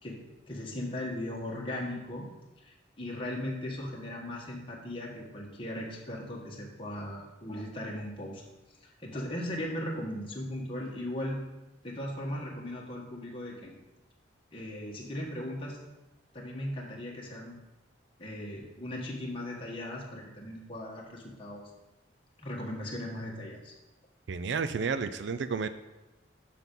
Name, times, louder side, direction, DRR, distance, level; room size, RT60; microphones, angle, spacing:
voice 1, 0.5-2.3 2.6-8.4 8.8-11.4 11.8-13.7 14.5-15.8 16.3-17.6 18.2-21.7 22.4-23.7, left 1 dB, 25° left, -2 dB, 1.2 m, -38 dB
voice 2, 24.3-25.7, right 5 dB, 65° right, 11 dB, 0.4 m, -31 dB
6.1 x 6.0 x 5.3 m, 1.0 s
head